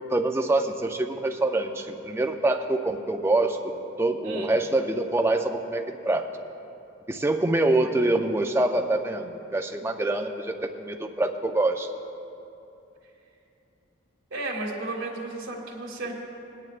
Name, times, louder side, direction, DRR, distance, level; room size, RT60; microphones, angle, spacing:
voice 1, 0.0-6.3 7.1-11.9, right 2 dB, 10° right, 5 dB, 0.4 m, -25 dB
voice 2, 14.3-16.1, right 2 dB, 75° right, -1 dB, 1.7 m, -33 dB
18.0 x 9.7 x 2.4 m, 2.8 s
head